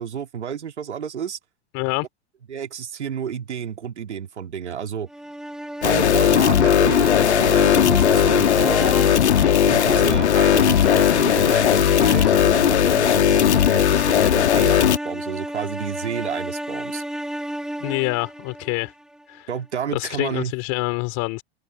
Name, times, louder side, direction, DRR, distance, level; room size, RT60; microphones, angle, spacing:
voice 1, 0.0-1.4 2.5-5.1 5.8-9.2 9.6-17.0 19.5-20.5, right 8 dB, 80° right, 2.6 m, -30 dB
voice 2, 1.7-2.1 17.8-18.9 19.3-19.5 19.9-21.4, left 27 dB, 50° left, 3.4 m, -26 dB
sound 1, 5.1-19.2, right 1 dB, ahead, 1.3 m, -31 dB
sound 2, 5.8-15.0, left 10 dB, 75° left, 2.2 m, -17 dB
open air
figure-of-eight pair, 85°, 34 cm